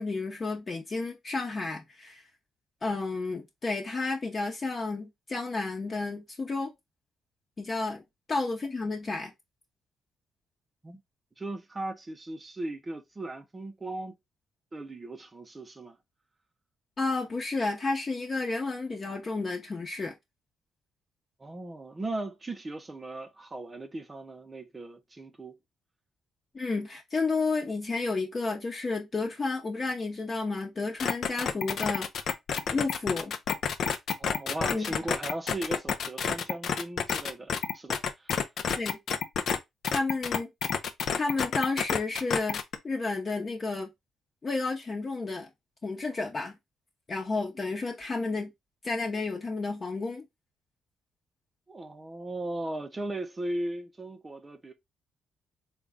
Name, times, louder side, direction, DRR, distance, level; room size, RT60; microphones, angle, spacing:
voice 1, 0.0-2.2 2.8-6.7 7.6-8.0 8.3-9.3 17.0-20.1 26.5-32.1 32.7-33.3 34.7-34.9 38.8-39.0 39.9-40.5 41.2-43.9 44.4-45.5 45.8-46.5 47.1-48.5 48.8-50.2, left 3 dB, 35° left, 0.9 m, -31 dB
voice 2, 11.4-14.2 14.7-16.0 21.4-25.6 34.2-38.5 51.7-54.7, right 2 dB, 25° right, 0.5 m, -37 dB
sound 1, 31.0-39.6 39.8-42.8, left 7 dB, 60° left, 0.5 m, -29 dB
3.8 x 2.3 x 3.5 m
cardioid pair, 90°, 0 cm